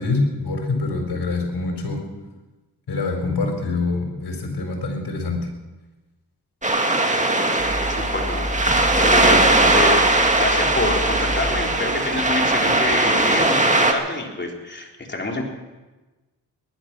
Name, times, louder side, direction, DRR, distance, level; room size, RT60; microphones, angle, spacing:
voice 1, 0.0-2.0 2.9-5.4, left 3 dB, 70° left, 3 dB, 4.4 m, -25 dB
sound 1, 6.6-13.9, right 2 dB, 20° right, 2.0 m, -19 dB
sound 2, 7.6-13.4, left 1 dB, 40° right, 6.3 m, -31 dB
voice 2, 7.9-8.5 8.8-15.4, left 2 dB, 25° left, 0 dB, 3.9 m, -27 dB
19.0 x 11.5 x 6.1 m, 1.2 s
cardioid pair, 60°, 41 cm